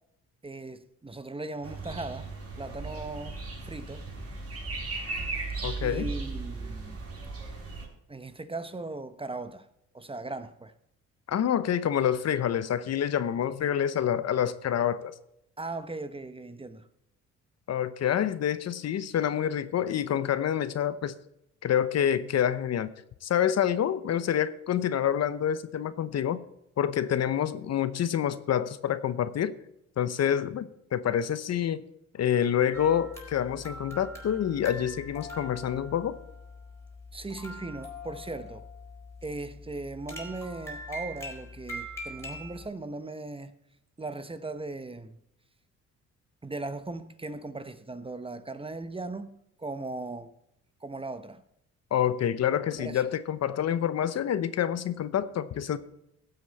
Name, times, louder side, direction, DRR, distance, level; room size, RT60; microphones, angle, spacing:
voice 1, 0.4-2.3 2.6-3.4 3.6-4.1 5.8-7.0 8.1-9.7 9.9-10.7 15.6-16.9 37.1-38.7 39.2-43.5 44.0-45.2 46.4-50.3 50.8-51.4 52.7-53.0, right 2 dB, 20° right, 1.0 m, -38 dB
sound 1, 1.6-7.9, right 3 dB, 50° right, 5.5 m, -36 dB
voice 2, 5.6-6.1 11.3-15.1 17.7-21.1 21.6-22.9 23.2-26.4 26.8-29.5 30.0-31.8 32.1-36.2 51.9-55.8, left 9 dB, 55° left, 0.9 m, -27 dB
sound 2, 32.7-42.7, left 1 dB, 10° left, 4.2 m, -43 dB
15.0 x 8.2 x 4.1 m
cardioid pair, 90°, 30 cm